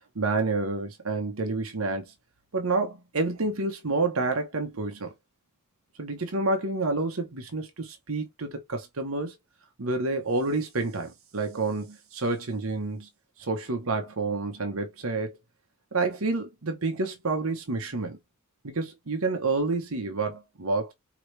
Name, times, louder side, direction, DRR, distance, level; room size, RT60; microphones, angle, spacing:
voice 1, 0.1-2.0 2.5-5.1 6.0-9.3 9.8-13.1 13.5-15.4 15.9-18.2 18.6-20.9, right 3 dB, 75° right, 1.1 m, -29 dB
4.7 x 3.0 x 3.3 m
head